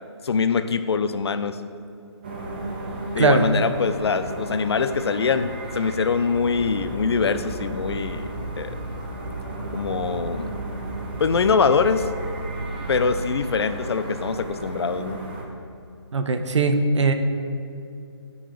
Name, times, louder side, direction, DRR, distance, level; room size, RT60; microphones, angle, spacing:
voice 1, 0.2-1.6 3.1-8.3 8.6-8.8 9.7-10.5 11.2-12.1 12.9-15.2, left 5 dB, 60° left, 11 dB, 0.4 m, -23 dB
sound 1, 2.2-15.4, right 2 dB, 20° right, 0.5 m, -35 dB
sound 2, 6.4-13.4, equal, 15° left, 1.5 m, -36 dB
voice 2, 16.1-17.1, right 3 dB, 75° right, 7 dB, 0.7 m, -20 dB
10.0 x 4.0 x 3.2 m, 2.6 s
hypercardioid pair, 165°, 15 cm